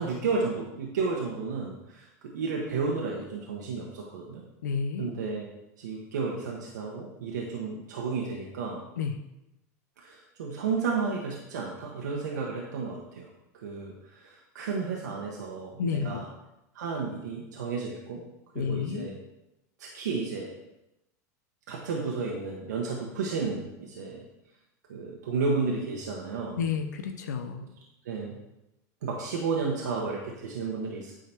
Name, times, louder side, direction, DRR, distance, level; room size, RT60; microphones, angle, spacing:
voice 1, 0.0-2.1 2.3-4.4 5.0-5.5 5.8-8.8 10.0-13.3 13.5-16.3 16.7-18.2 18.5-19.2 19.8-20.5 21.7-24.2 24.9-26.6 28.0-28.3 29.0-31.1, right 4 dB, 90° right, -1 dB, 1.2 m, -32 dB
voice 2, 4.6-5.1 9.0-9.2 15.8-16.2 18.5-19.1 26.6-27.6, left 6 dB, 90° left, 6 dB, 0.7 m, -30 dB
9.0 x 3.9 x 4.5 m, 0.92 s
supercardioid pair, 115°, 9 cm